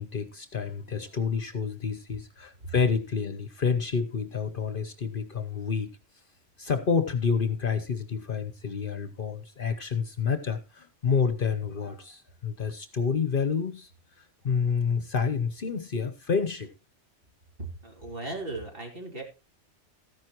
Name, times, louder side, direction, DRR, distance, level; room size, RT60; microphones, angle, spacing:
voice 1, 0.0-6.0 6.6-13.9 14.2-16.7, left 6 dB, 50° left, 10 dB, 1.0 m, -29 dB
voice 2, 17.8-19.2, right 2 dB, 50° right, 1 dB, 3.6 m, -37 dB
14.0 x 10.5 x 3.0 m, 0.29 s
omnidirectional pair, 1.2 m